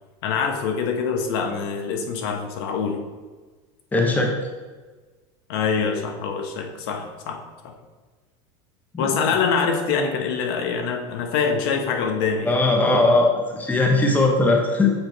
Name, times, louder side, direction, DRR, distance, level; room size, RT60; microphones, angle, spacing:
voice 1, 0.2-3.0 5.5-7.4 7.6-7.7 9.0-12.6, left 5 dB, 75° left, 4 dB, 1.0 m, -24 dB
voice 2, 3.9-4.3 8.9-9.1 12.5-14.9, left 2 dB, 10° left, 2 dB, 0.8 m, -19 dB
7.7 x 3.0 x 4.6 m, 1.3 s
supercardioid pair, 110°, 13 cm